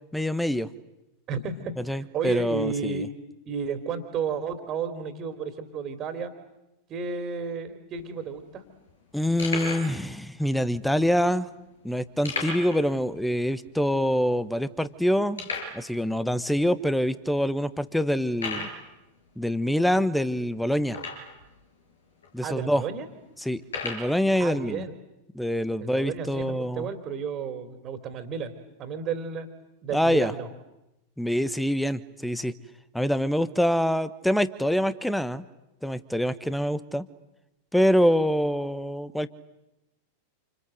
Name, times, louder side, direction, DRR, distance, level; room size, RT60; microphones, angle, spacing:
voice 1, 0.1-0.7 1.8-3.1 9.1-11.5 11.8-15.4 15.7-18.7 19.4-21.0 22.3-22.8 23.4-24.9 25.3-26.9 29.9-30.3 31.2-32.5 32.9-35.4 35.8-37.1 37.7-39.3, equal, ahead, 14 dB, 1.2 m, -25 dB
voice 2, 1.3-3.1 3.4-6.3 6.9-8.6 18.6-18.7 22.4-23.1 24.4-24.9 25.8-28.5 28.8-29.5 29.8-30.5, right 5 dB, 30° right, 7 dB, 3.1 m, -32 dB
sound 1, 7.9-8.4 8.9-9.0 9.4-9.9 10.7-10.8 12.2-12.8 13.1-13.2 13.7-13.8 14.3-14.4 15.4-15.8 16.6-16.7 17.3-17.4 18.3-18.8 20.9-21.4 22.2-22.3 23.6-24.1, left 3 dB, 70° left, 7.2 m, -33 dB
28.5 x 27.0 x 7.8 m, 0.92 s
figure-of-eight pair, 90°, 0 cm